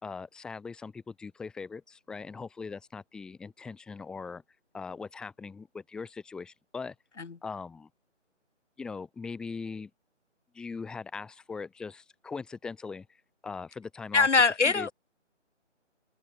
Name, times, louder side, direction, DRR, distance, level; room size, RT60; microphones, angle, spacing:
voice 1, 0.0-4.4 4.7-7.0 7.4-7.9 8.8-9.9 10.5-13.1 13.4-14.3 14.6-14.9, left 4 dB, ahead, 3.7 m, -40 dB
voice 2, 14.1-14.9, left 4 dB, 65° left, 1.6 m, -22 dB
open air
hypercardioid pair, 175°, 37 cm